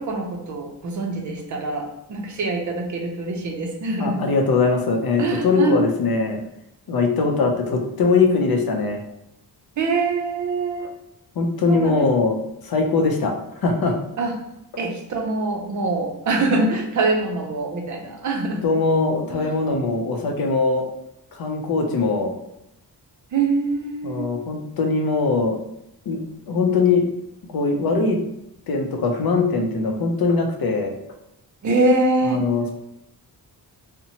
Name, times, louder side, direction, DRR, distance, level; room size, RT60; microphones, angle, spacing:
voice 1, 0.0-4.2 5.2-5.8 9.8-11.0 11.7-12.1 14.2-14.3 14.8-18.7 19.3-19.5 23.3-24.3 31.6-32.4, right 3 dB, 50° right, 2 dB, 0.5 m, -24 dB
voice 2, 4.0-6.4 6.9-9.0 11.4-12.4 12.6-13.3 13.6-14.0 18.6-20.9 21.3-22.3 24.0-25.6 26.1-26.2 26.5-27.0 27.5-28.2 28.7-31.0 32.3-32.7, left 4 dB, 60° left, 2 dB, 0.5 m, -21 dB
2.7 x 2.1 x 2.7 m, 0.83 s
wide cardioid pair, 180°, 40 cm